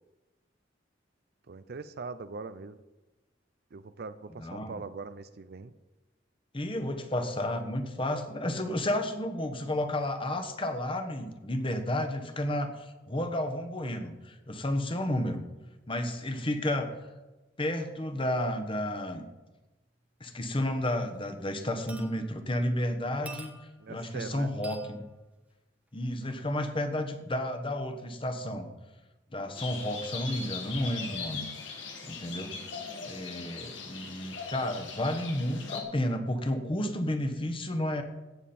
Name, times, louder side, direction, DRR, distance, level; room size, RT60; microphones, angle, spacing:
voice 1, 1.5-2.8 3.7-5.7 23.8-24.5, right 4 dB, 55° right, 13 dB, 0.5 m, -41 dB
voice 2, 4.4-4.7 6.5-15.4 15.9-16.9 17.6-19.2 20.2-23.5 23.9-25.0 25.9-28.7 29.3-32.5 33.0-38.0, left 1 dB, 30° left, 7 dB, 1.2 m, -32 dB
sound 1, 20.7-20.8 21.1-21.4 21.9-22.6 23.3-24.0 24.6-25.0 26.3-26.5 27.5-27.6, right 2 dB, 10° right, 1.1 m, -48 dB
sound 2, 29.6-35.8, left 5 dB, 90° left, 2.2 m, -40 dB
16.5 x 7.2 x 4.3 m, 1.1 s
head